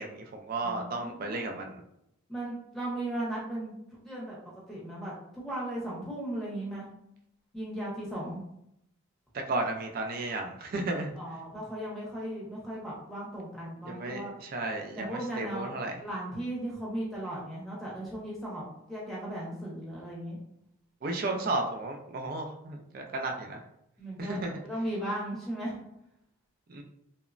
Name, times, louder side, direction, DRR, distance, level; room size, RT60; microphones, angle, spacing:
voice 1, 0.0-1.8 9.3-11.1 13.8-16.0 21.0-23.6 24.2-24.6 26.7-26.8, right 2 dB, 40° right, 3 dB, 0.3 m, -34 dB
voice 2, 0.6-1.6 2.3-4.4 4.7-6.9 7.5-8.4 11.2-14.4 14.9-15.7 16.0-18.6 18.9-20.4 24.0-25.7, right 1 dB, ahead, -6 dB, 0.7 m, -37 dB
3.0 x 2.0 x 2.4 m, 0.79 s
head